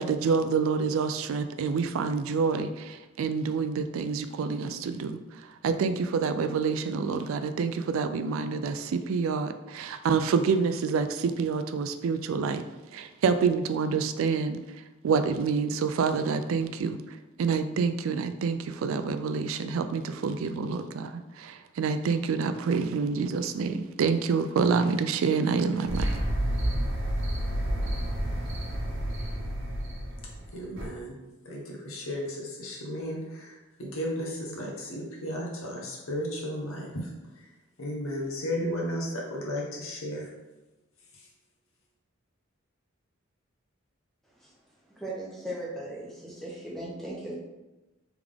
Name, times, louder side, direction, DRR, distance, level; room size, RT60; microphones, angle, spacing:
voice 1, 0.0-12.6 12.9-26.1, right 5 dB, 80° right, 9 dB, 0.3 m, -27 dB
sound 1, 25.8-30.9, equal, 65° right, 0.9 m, -30 dB
voice 2, 30.5-31.2 31.4-37.1 37.4-37.5 37.8-40.3 41.1-41.3, equal, 90° left, -2 dB, 1.1 m, -34 dB
voice 3, 44.9-47.3, right 1 dB, ahead, -6 dB, 1.0 m, -38 dB
3.5 x 3.5 x 3.4 m, 1.1 s
head